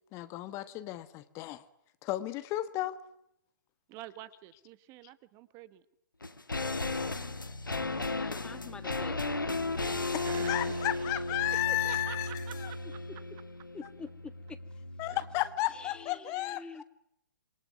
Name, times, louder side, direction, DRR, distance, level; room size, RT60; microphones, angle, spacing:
voice 1, 0.1-1.6 2.0-3.0 10.1-12.7 15.0-16.6, left 15 dB, 25° left, 1.4 m, -33 dB
voice 2, 3.9-5.8 9.8-11.1 11.7-13.0 15.1-15.2, right 15 dB, 30° right, 1.5 m, -47 dB
sound 1, 6.2-15.6 15.8-15.9, left 2 dB, 85° left, 2.4 m, -35 dB
voice 3, 8.2-9.4 13.7-14.1 15.7-16.8, left 4 dB, 10° left, 1.6 m, -46 dB
27.5 x 23.0 x 9.5 m
figure-of-eight pair, 125°, 11 cm